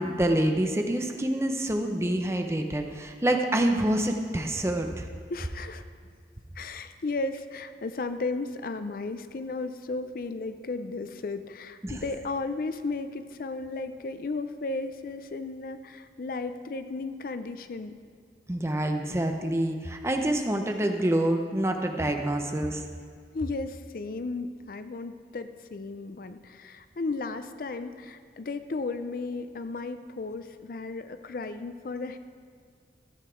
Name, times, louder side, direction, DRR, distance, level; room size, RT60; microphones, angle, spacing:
voice 1, 0.0-5.1 11.8-12.0 18.5-22.8, right 1 dB, 15° right, 4 dB, 0.7 m, -27 dB
voice 2, 5.3-5.8 6.6-17.9 23.3-32.2, left 3 dB, 50° left, 10 dB, 0.4 m, -34 dB
13.5 x 8.1 x 4.5 m, 2.1 s
head